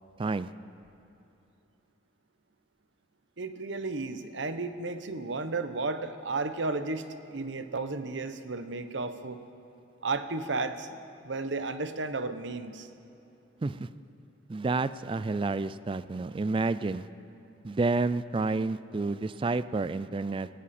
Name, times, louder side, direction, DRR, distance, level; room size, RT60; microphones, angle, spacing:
voice 1, 0.2-0.5 13.6-13.9 14.5-17.1 17.6-20.5, right 3 dB, 25° right, 15 dB, 0.3 m, -29 dB
voice 2, 3.4-9.4 10.0-11.0 11.2-12.9, right 3 dB, 70° right, 10 dB, 0.9 m, -33 dB
18.0 x 18.0 x 4.3 m, 2.9 s
head